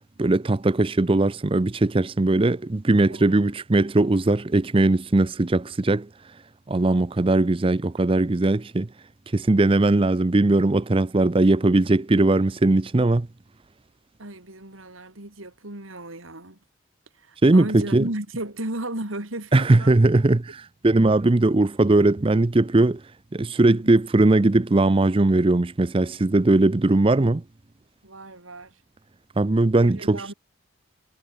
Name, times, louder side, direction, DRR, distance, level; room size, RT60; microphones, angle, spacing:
voice 1, 0.2-6.4 6.7-8.9 9.3-13.3 17.4-18.0 19.5-23.0 23.3-27.4 29.4-30.2, right 2 dB, 25° right, 0.5 m, -20 dB
voice 2, 3.1-3.6 14.2-16.6 17.1-20.2 23.7-24.0 28.0-28.8 29.8-30.3, right 1 dB, 80° right, 4.3 m, -35 dB
head